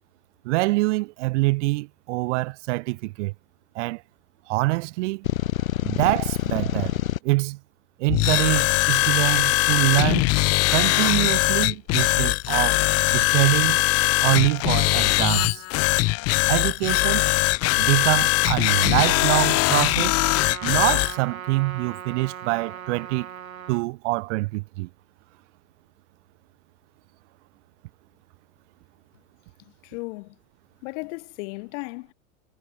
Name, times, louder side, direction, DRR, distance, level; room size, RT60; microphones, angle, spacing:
voice 1, 0.4-3.3 3.7-4.0 4.5-5.3 5.8-7.0 7.2-7.6 8.0-10.3 10.7-12.8 13.1-13.8 14.2-15.6 16.1-16.2 16.5-17.2 17.8-20.2 20.6-23.3 23.7-24.9, right 23 dB, 60° right, 0.6 m, -25 dB
sound 1, 5.2-7.2, left 11 dB, 85° left, 1.6 m, -26 dB
sound 2, 8.1-21.1, left 23 dB, 40° left, 0.6 m, -21 dB
Trumpet, 20.1-23.9, right 9 dB, 90° right, 3.6 m, -38 dB
voice 2, 29.6-30.4 30.8-32.1, left 27 dB, 60° left, 6.0 m, -36 dB
hypercardioid pair, 100°, 40 cm